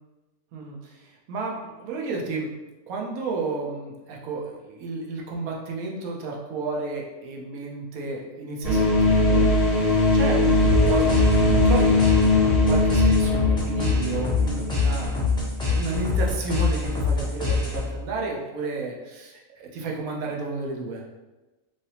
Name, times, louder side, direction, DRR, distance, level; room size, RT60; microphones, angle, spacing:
voice 1, 0.5-2.5 2.9-15.2 15.6-21.0, right 3 dB, 75° right, -1 dB, 1.1 m, -32 dB
sound 1, 8.6-15.7, left 2 dB, 45° right, 1.1 m, -21 dB
sound 2, 10.6-18.1, left 4 dB, 5° left, 0.4 m, -25 dB
3.2 x 2.7 x 2.8 m, 1.1 s
omnidirectional pair, 1.6 m